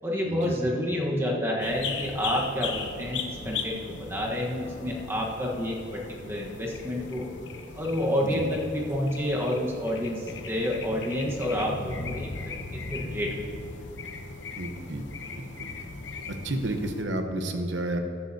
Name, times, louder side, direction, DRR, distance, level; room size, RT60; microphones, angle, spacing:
voice 1, 0.0-7.3 7.7-12.3 12.9-13.3, equal, 15° right, -2 dB, 1.2 m, -29 dB
sound 1, 1.6-17.0, left 4 dB, 80° left, 0.9 m, -38 dB
voice 2, 14.6-15.5 16.4-18.0, right 1 dB, 75° right, 5 dB, 1.0 m, -31 dB
14.0 x 11.0 x 2.8 m, 2.4 s
head